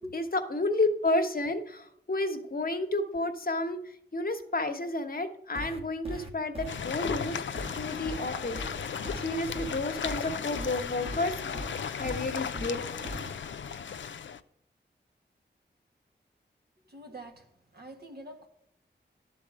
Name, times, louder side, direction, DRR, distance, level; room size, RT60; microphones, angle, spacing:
voice 1, 0.1-7.4 7.8-8.6 8.8-11.3 12.0-12.8, left 2 dB, 50° left, 7 dB, 1.1 m, -31 dB
sound 1, 5.5-13.3, equal, 30° right, 1.5 m, -40 dB
sound 2, 6.7-14.4, left 7 dB, 80° left, 0.5 m, -36 dB
voice 2, 16.8-17.5 17.7-18.5, right 1 dB, 55° right, 3 dB, 1.6 m, -44 dB
11.0 x 4.2 x 7.4 m, 0.73 s
cardioid pair, 45°, 19 cm